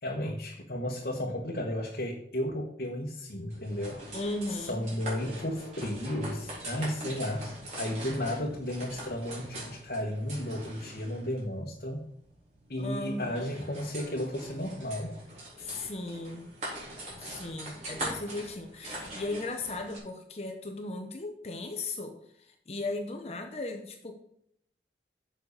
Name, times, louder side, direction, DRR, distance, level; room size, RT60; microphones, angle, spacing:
voice 1, 0.0-4.0 4.5-7.5 7.8-12.1 12.7-15.2, left 1 dB, 55° left, -1 dB, 1.2 m, -33 dB
Noisy Rolling Metal Cart on Rubber Wheels, 3.5-20.0, right 1 dB, 40° right, 3.9 m, -42 dB
voice 2, 4.1-4.8 12.8-13.5 15.6-16.5 17.2-24.1, left 2 dB, 35° left, 4 dB, 0.8 m, -37 dB
7.2 x 5.8 x 6.6 m, 0.71 s
head